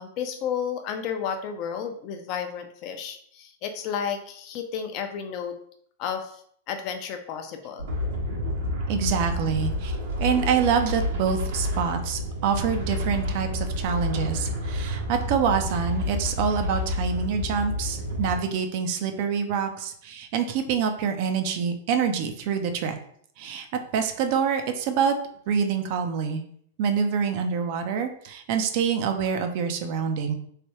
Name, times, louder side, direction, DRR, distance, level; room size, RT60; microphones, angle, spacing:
voice 1, 0.0-5.6 6.0-6.4 6.7-7.9, left 7 dB, 45° left, 6 dB, 0.5 m, -32 dB
sound 1, 7.8-18.4, left 1 dB, 90° right, 1.4 m, -29 dB
voice 2, 8.9-9.9 10.2-23.0 23.4-25.2 25.5-26.4 26.8-30.3, right 7 dB, 55° right, 6 dB, 0.4 m, -26 dB
3.2 x 2.2 x 2.9 m, 0.63 s
hypercardioid pair, 125°, 0 cm